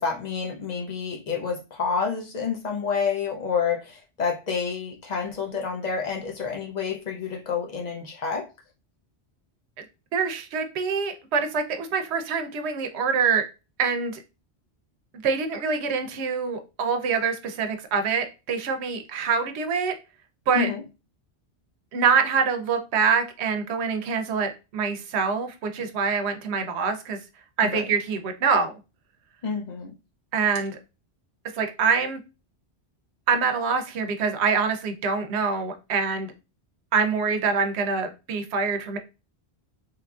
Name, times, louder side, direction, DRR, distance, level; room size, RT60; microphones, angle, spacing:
voice 1, 0.0-8.5 20.5-20.8 27.6-27.8 29.4-29.9, left 6 dB, 55° left, 0.5 m, -29 dB
voice 2, 10.1-13.4 13.8-14.2 15.2-19.9 20.5-20.7 21.9-27.2 27.6-28.7 30.3-30.8 31.5-32.2 33.3-36.3 36.9-39.0, right 5 dB, 80° right, 0.9 m, -25 dB
3.2 x 2.4 x 2.3 m
omnidirectional pair, 1.1 m